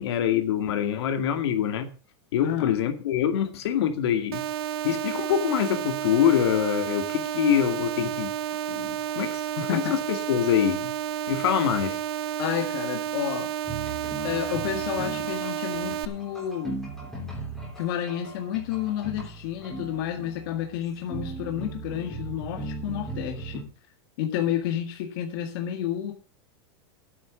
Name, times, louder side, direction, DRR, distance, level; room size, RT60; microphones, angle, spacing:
voice 1, 0.0-1.9 2.3-4.4 4.8-8.3 8.7-9.4 9.7-10.8 11.3-12.0, left 10 dB, 70° left, 6 dB, 2.3 m, -25 dB
voice 2, 2.4-2.7 9.6-9.9 12.4-13.5 14.2-16.8 17.8-23.6 24.2-26.1, left 10 dB, 50° left, 3 dB, 1.9 m, -30 dB
sound 1, 4.3-16.1, right 11 dB, 65° right, 1.1 m, -31 dB
sound 2, 13.6-23.6, right 2 dB, ahead, 3.4 m, -38 dB
11.0 x 8.7 x 6.1 m, 0.36 s
supercardioid pair, 170°, 14 cm